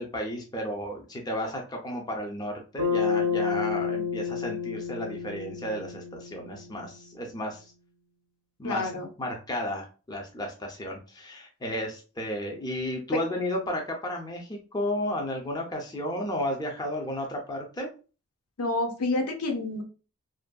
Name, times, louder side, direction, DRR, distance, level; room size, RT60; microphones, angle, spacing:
voice 1, 0.0-7.7 8.6-8.9 9.2-17.9, left 1 dB, 20° left, 1 dB, 0.4 m, -33 dB
Bass guitar, 2.8-7.2, left 6 dB, 70° right, 0.7 m, -30 dB
voice 2, 8.6-9.1 13.1-13.2 18.6-19.8, left 2 dB, 85° left, 4 dB, 0.6 m, -28 dB
2.5 x 2.5 x 2.2 m, 0.34 s
head